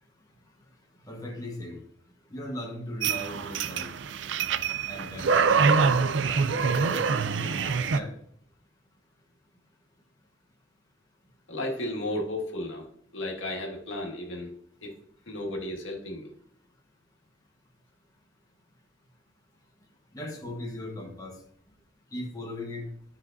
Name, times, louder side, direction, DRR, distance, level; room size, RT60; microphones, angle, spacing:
voice 1, 1.1-1.8 2.3-3.9 4.9-6.0 6.3-7.0 7.3-8.1 20.1-21.4 22.1-22.9, left 1 dB, 20° left, 0 dB, 1.2 m, -38 dB
sound 1, 3.0-8.0, right 5 dB, 65° right, 0.5 m, -25 dB
voice 2, 11.5-12.9 13.1-14.5 14.8-15.0 15.3-16.3, left 1 dB, 80° left, 0 dB, 2.0 m, -33 dB
12.5 x 5.6 x 2.7 m, 0.67 s
head